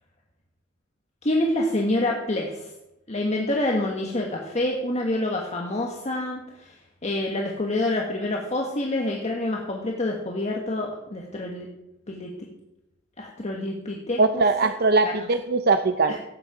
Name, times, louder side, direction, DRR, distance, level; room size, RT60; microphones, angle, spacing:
voice 1, 1.2-2.7 3.1-11.7 12.1-12.3 13.2-14.4 15.0-15.3 16.1-16.2, left 1 dB, 35° left, 0 dB, 1.5 m, -27 dB
voice 2, 14.2-16.2, right 3 dB, 50° right, 9 dB, 0.6 m, -21 dB
16.0 x 8.9 x 5.0 m, 0.92 s
head